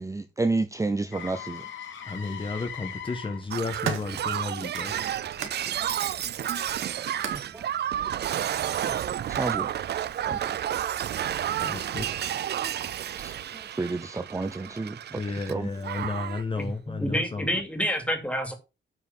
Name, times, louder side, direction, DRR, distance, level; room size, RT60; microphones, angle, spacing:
voice 1, 0.0-1.7 5.6-5.9 7.0-7.7 8.0-9.7 10.3-10.6 13.2-15.2 15.5-15.7, right 3 dB, 15° right, 0.7 m, -32 dB
Motor vehicle (road), 1.1-9.0 13.4-13.5, left 8 dB, 70° left, 3.6 m, -45 dB
Closing a tool box, 1.2-1.3 2.4-2.8 3.3-5.6 6.1-7.6 8.4-8.5, right 7 dB, 80° right, 2.1 m, -37 dB
voice 2, 2.0-5.1 11.6-12.1 15.1-17.5, left 3 dB, 25° left, 1.4 m, -33 dB
Shatter, 3.5-15.5 15.8-16.4 17.5-17.6, right 10 dB, 55° right, 0.4 m, -31 dB
voice 3, 16.6-18.5, equal, 5° left, 2.9 m, -28 dB
9.6 x 4.7 x 7.5 m
cardioid pair, 120°, 20 cm